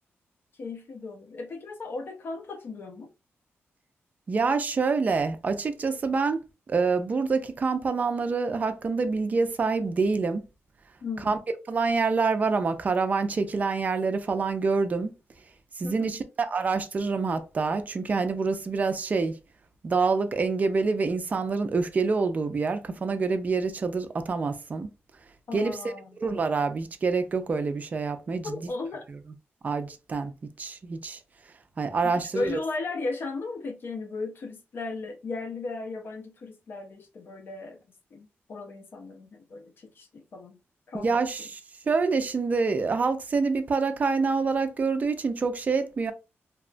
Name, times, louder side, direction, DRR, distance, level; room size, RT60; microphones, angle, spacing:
voice 1, 0.5-3.1 11.0-11.4 15.8-16.2 25.5-26.1 28.4-29.0 32.0-37.8 38.1-40.6 40.9-41.5, left 3 dB, 50° left, 0.4 m, -36 dB
voice 2, 4.3-6.4 6.7-10.4 11.3-11.4 11.7-15.1 15.8-19.4 19.8-24.9 25.5-25.8 26.2-28.6 29.6-31.2 31.8-32.6 40.9-41.6 41.9-46.1, right 4 dB, 35° right, 0.4 m, -26 dB
2.8 x 2.2 x 2.4 m
wide cardioid pair, 155°, 5 cm